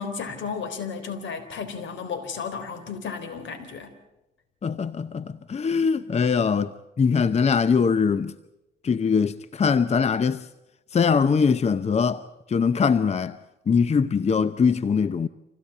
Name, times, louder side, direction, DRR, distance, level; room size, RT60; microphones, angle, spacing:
voice 1, 0.0-3.9, left 6 dB, 70° left, 3.7 m, -33 dB
voice 2, 4.6-6.7 7.0-8.3 8.8-10.5 10.9-13.4 13.7-15.3, left 5 dB, 35° left, 0.7 m, -22 dB
26.0 x 16.5 x 8.4 m
cardioid pair, 90°, 20 cm